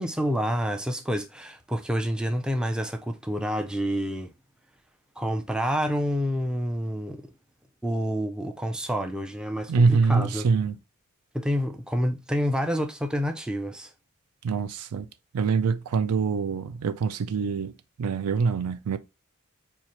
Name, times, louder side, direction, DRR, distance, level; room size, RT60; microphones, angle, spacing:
voice 1, 0.0-4.3 5.2-7.3 7.8-10.5 11.3-13.9, equal, 5° right, 0.3 m, -28 dB
voice 2, 9.7-10.8 14.4-15.1 15.3-17.7 18.0-19.0, right 5 dB, 85° right, 0.4 m, -24 dB
4.5 x 2.4 x 2.8 m
head